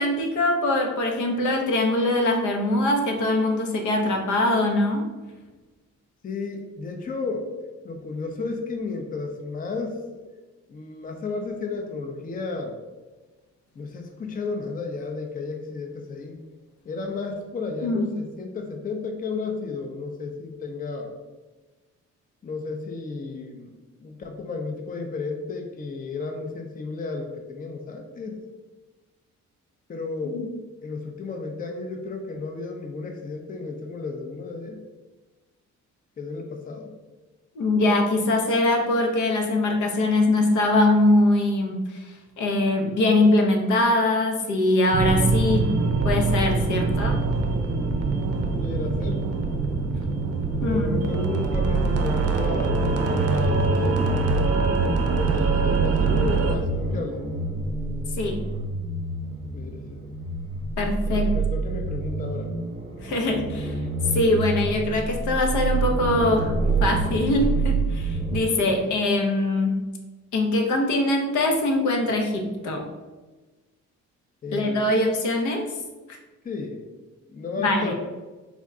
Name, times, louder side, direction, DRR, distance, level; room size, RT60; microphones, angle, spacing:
voice 1, 0.0-5.1 17.8-18.1 30.2-30.5 37.6-42.0 42.4-45.7 46.0-47.2 50.6-51.0 58.2-58.4 60.8-61.3 63.0-63.8 64.1-66.5 66.8-69.7 70.3-72.9 74.5-75.7 76.1-76.2 77.6-77.9, left 2 dB, 75° left, 2 dB, 0.7 m, -22 dB
voice 2, 6.2-7.5 7.8-10.0 10.3-10.4 10.7-12.8 13.8-16.4 16.9-21.1 22.4-23.7 24.0-28.4 29.9-30.4 30.8-34.8 36.2-36.9 48.3-49.2 50.6-54.1 55.1-57.2 59.5-60.1 61.1-62.5 68.6-68.9 74.4-74.9 76.4-76.8 77.3-77.9, left 4 dB, 30° left, 3 dB, 0.5 m, -33 dB
sound 1, 44.9-56.6, right 3 dB, 50° right, 0.5 m, -24 dB
sound 2, 51.5-68.4, right 3 dB, 20° right, 0.7 m, -27 dB
3.5 x 2.1 x 3.6 m, 1.2 s
cardioid pair, 90°, 30 cm